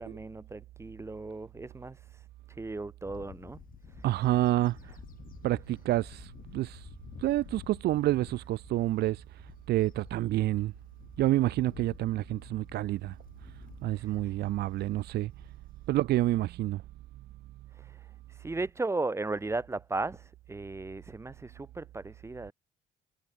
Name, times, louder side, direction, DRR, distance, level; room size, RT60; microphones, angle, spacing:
voice 1, 0.0-2.0 2.6-3.6 18.4-20.2 20.5-22.5, right 3 dB, 15° right, 5.6 m, -35 dB
Bird / Wind, 3.1-15.8, left 10 dB, 55° left, 7.7 m, -51 dB
voice 2, 4.0-4.8 5.4-6.8 7.2-9.2 9.7-10.7 11.2-13.1 13.8-15.3 15.9-16.8, right 15 dB, 75° right, 2.0 m, -28 dB
cardioid pair, 110°, 17 cm